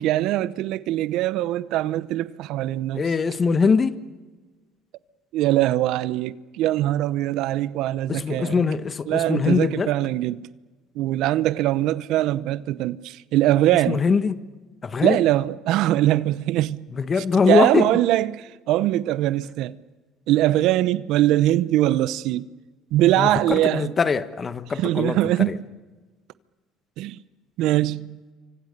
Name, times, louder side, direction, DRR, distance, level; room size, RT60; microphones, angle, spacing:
voice 1, 0.0-3.0 5.3-8.6 9.1-10.5 11.0-14.0 15.0-16.8 17.5-19.8 20.3-22.5 22.9-23.9 24.8-25.5 27.0-27.2 27.6-28.2, right 14 dB, 70° right, 0.8 m, -22 dB
voice 2, 2.9-4.0 8.1-9.9 13.9-14.4 14.8-15.2 16.9-17.9 23.2-25.6, left 5 dB, 30° left, 1.3 m, -22 dB
28.0 x 25.0 x 6.7 m
supercardioid pair, 95°, 0 cm